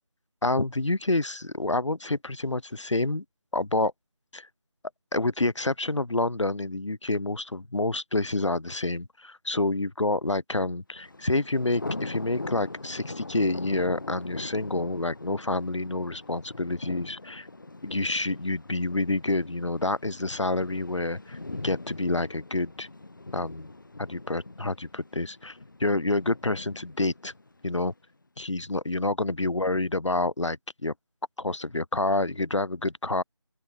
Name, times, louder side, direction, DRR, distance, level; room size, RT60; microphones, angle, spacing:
voice 1, 0.4-3.2 3.5-3.9 4.3-4.5 5.1-17.5 17.8-22.9 23.3-23.7 24.0-27.3 27.6-27.9 28.4-30.9 31.4-33.2, left 2 dB, 80° left, 2.5 m, -28 dB
Thunder, 11.0-27.9, left 2 dB, 45° left, 1.2 m, -41 dB
open air
figure-of-eight pair, 180°, 15 cm